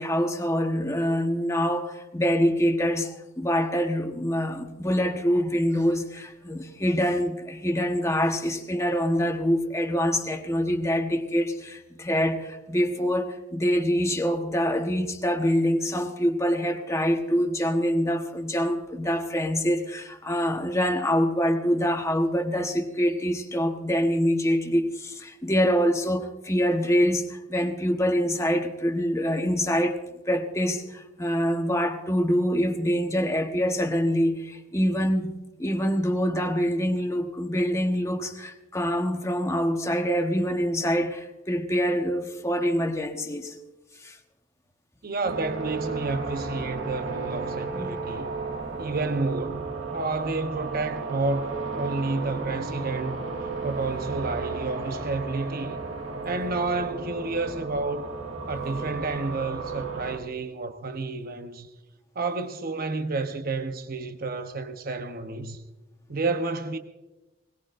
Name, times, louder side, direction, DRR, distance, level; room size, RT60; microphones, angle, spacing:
voice 1, 0.0-30.0 30.3-35.3 35.6-43.5 44.0-44.2 47.7-47.9, equal, 15° left, 1.2 m, -25 dB
voice 2, 45.0-48.3 48.8-53.2 53.6-55.8 56.2-58.1 58.5-61.7 62.1-65.6 66.1-66.8, right 3 dB, 50° right, 0.9 m, -30 dB
sound 1, 45.2-60.2, right 4 dB, 75° right, 2.1 m, -34 dB
22.0 x 19.5 x 2.6 m
head